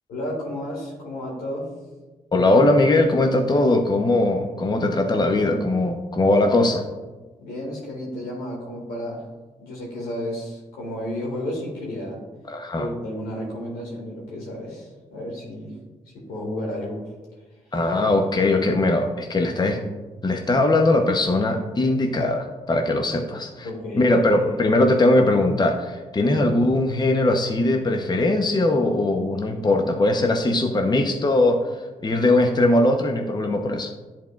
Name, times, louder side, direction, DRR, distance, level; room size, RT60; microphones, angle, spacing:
voice 1, 0.1-1.7 7.4-9.2 9.6-12.2 12.8-15.8 16.1-17.0 23.6-24.1 30.7-30.8, left 1 dB, 85° left, -3 dB, 2.0 m, -32 dB
voice 2, 2.3-6.8 12.5-12.9 17.7-19.8 20.2-23.7 23.9-33.9, left 2 dB, 30° left, 3 dB, 0.8 m, -20 dB
10.5 x 4.3 x 2.4 m, 1.3 s
hypercardioid pair, 45°, 15 cm